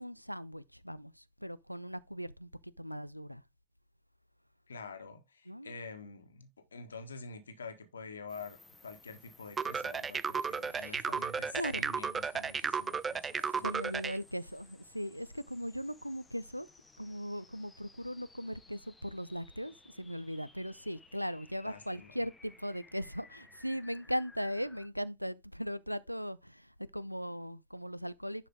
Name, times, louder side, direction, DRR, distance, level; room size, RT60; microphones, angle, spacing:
voice 1, 0.0-2.5 2.8-3.4 5.5-5.7 10.7-11.1 11.5-11.9 13.6-16.7 17.0-28.5, equal, 90° right, 0.4 m, -39 dB
voice 2, 4.7-8.6 8.8-14.0 21.6-22.2, left 4 dB, 70° left, 1.5 m, -47 dB
sound 1, 8.3-24.9, left 3 dB, 10° left, 1.0 m, -60 dB
sound 2, 9.6-14.2, right 6 dB, 20° right, 0.4 m, -34 dB
10.5 x 4.9 x 3.5 m
figure-of-eight pair, 90°, 0 cm